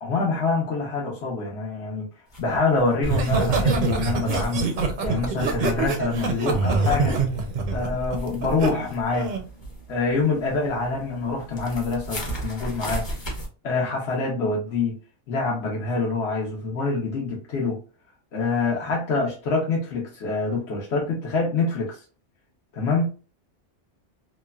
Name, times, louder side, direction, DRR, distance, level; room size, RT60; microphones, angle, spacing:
voice 1, 0.0-2.1 2.4-7.2 7.7-9.3 9.9-13.1 13.6-14.9 15.3-17.8 18.3-22.0 22.8-23.1, left 3 dB, 70° left, 1.0 m, -26 dB
sound 1, 2.3-6.1 6.4-13.5, right 1 dB, 30° left, 0.7 m, -37 dB
Laughter, 3.0-8.7 9.1-9.4, right 4 dB, 55° right, 0.5 m, -24 dB
3.1 x 2.1 x 2.2 m
omnidirectional pair, 1.2 m